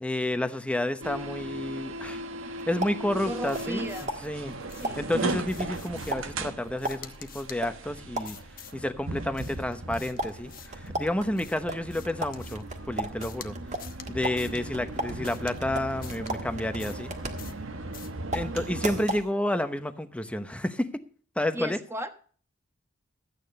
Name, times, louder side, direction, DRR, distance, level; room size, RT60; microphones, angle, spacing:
voice 1, 0.0-2.2 2.7-4.5 4.9-8.4 8.7-13.5 14.1-17.1 18.3-21.0 21.4-21.8, left 1 dB, 5° left, 9 dB, 0.9 m, -30 dB
sound 1, 1.0-19.1, right 2 dB, 90° right, 1.3 m, -38 dB
sound 2, 2.3-3.8 4.1-8.6 10.2-18.0 18.3-19.3, right 1 dB, 35° right, 1.6 m, -36 dB
voice 2, 3.1-4.1 4.8-5.1 21.5-22.1, right 1 dB, 15° right, 7 dB, 1.2 m, -35 dB
sound 3, 3.5-4.3 4.7-5.0 5.5-6.3 6.8-7.6 8.2-8.8 9.4-10.9 11.4-12.7 13.2-13.5 13.8-14.1 14.4-14.6 15.2-15.6 16.0-16.3 16.8-17.1 17.4-17.6 17.9-18.2, left 10 dB, 45° left, 0.9 m, -48 dB
13.5 x 9.1 x 5.3 m, 0.43 s
head